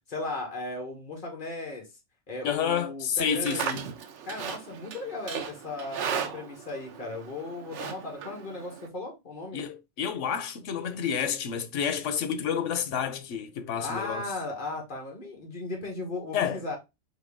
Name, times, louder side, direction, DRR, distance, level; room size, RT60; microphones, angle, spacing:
voice 1, 0.1-1.9 2.3-3.6 4.3-9.6 13.8-16.8, left 2 dB, 45° left, 1.6 m, -36 dB
voice 2, 2.4-3.8 9.5-14.2 16.3-16.6, left 8 dB, 90° left, 1.0 m, -29 dB
Livestock farm animals working animals, 3.2-8.9, right 7 dB, 85° right, 1.0 m, -37 dB
4.5 x 2.9 x 3.5 m
omnidirectional pair, 1.2 m